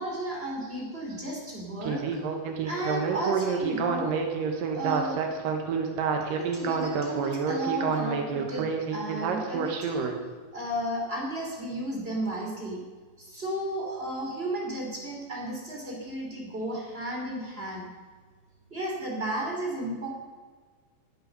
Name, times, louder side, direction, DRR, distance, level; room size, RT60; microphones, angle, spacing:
voice 1, 0.0-2.2 2.6-4.2 4.7-5.2 6.5-8.7 8.9-10.1 10.5-12.8 13.2-17.9 18.7-20.1, right 1 dB, 15° right, -2 dB, 3.1 m, -33 dB
Speech synthesizer, 1.8-10.1, right 6 dB, 70° right, 2.9 m, -28 dB
19.0 x 7.8 x 6.7 m, 1.5 s
omnidirectional pair, 4.2 m